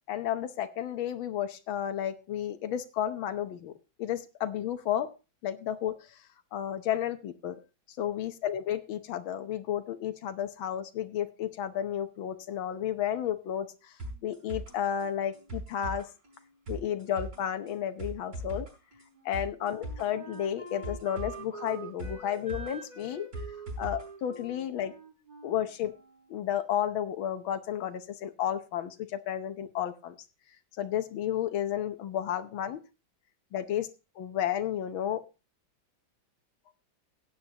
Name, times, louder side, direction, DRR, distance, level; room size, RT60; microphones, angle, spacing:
voice 1, 0.1-5.1 5.4-6.2 6.5-7.6 8.0-13.9 14.2-16.1 16.7-18.7 19.3-23.3 23.8-24.9 25.4-25.9 26.3-30.2 30.8-32.8 33.5-33.9 34.2-35.2, left 10 dB, 90° left, 9 dB, 1.7 m, -32 dB
sound 1, 14.0-24.0 24.3-24.4, right 1 dB, 60° right, 5.6 m, -41 dB
Wind instrument woodwind instrument, 19.1-26.6, right 4 dB, 25° right, 1.9 m, -46 dB
16.0 x 9.1 x 2.8 m, 0.30 s
omnidirectional pair, 2.1 m